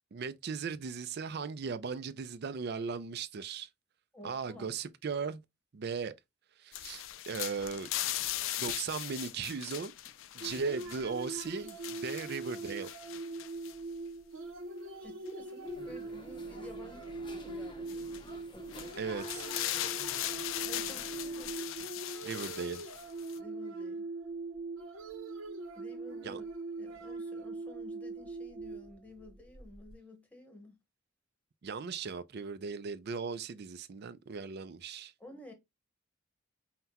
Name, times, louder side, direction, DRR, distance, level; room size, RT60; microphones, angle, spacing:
voice 1, 0.1-3.7 4.2-5.4 5.7-6.1 6.6-7.9 8.6-9.9 10.3-12.9 19.0-19.5 22.2-22.8 26.2-26.4 31.6-35.1, right 5 dB, 55° right, 0.4 m, -37 dB
voice 2, 4.1-4.7 15.0-18.9 20.6-22.0 23.4-24.0 25.7-26.4 26.8-30.7 35.2-35.5, left 2 dB, 5° left, 1.0 m, -51 dB
sound 1, 6.7-13.7 15.3-15.4 17.9-18.2 18.7-23.4, left 13 dB, 75° left, 0.4 m, -39 dB
sound 2, 10.4-29.9, right 3 dB, 90° right, 0.8 m, -42 dB
sound 3, 15.6-21.6, left 2 dB, 25° left, 0.6 m, -50 dB
5.7 x 2.2 x 2.8 m
head